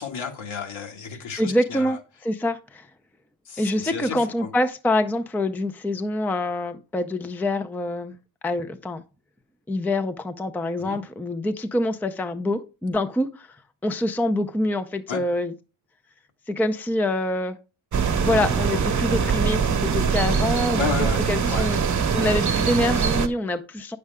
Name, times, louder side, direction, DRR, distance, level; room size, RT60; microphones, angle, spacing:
voice 1, 0.0-2.0 3.5-4.5 10.8-11.0 15.1-15.2 20.7-21.7, left 6 dB, 75° left, 2.2 m, -32 dB
voice 2, 1.4-2.0 2.2-2.9 3.6-8.2 8.4-9.0 9.7-13.5 13.8-15.5 16.5-17.6 18.1-21.8 22.1-24.0, left 1 dB, 5° left, 0.5 m, -25 dB
sound 1, 17.9-23.3, right 6 dB, 35° right, 1.1 m, -23 dB
9.2 x 6.6 x 3.5 m
wide cardioid pair, 160°, 48 cm